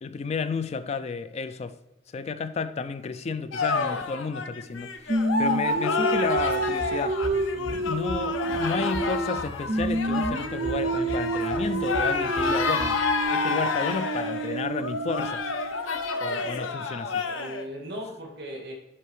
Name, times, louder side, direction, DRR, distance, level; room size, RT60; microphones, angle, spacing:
voice 1, 0.0-1.8 2.1-7.2 7.8-15.4 16.2-17.2, left 4 dB, 30° left, 0.3 m, -32 dB
sound 1, 3.5-17.6, left 4 dB, 70° left, 0.7 m, -29 dB
Singing, 5.1-9.4 9.7-15.7, right 2 dB, 35° right, 0.6 m, -29 dB
sound 2, 6.1-13.2, right 1 dB, 90° left, 1.9 m, -40 dB
voice 2, 7.5-7.9 17.2-18.7, equal, 55° right, 2.1 m, -38 dB
10.0 x 4.8 x 3.2 m
head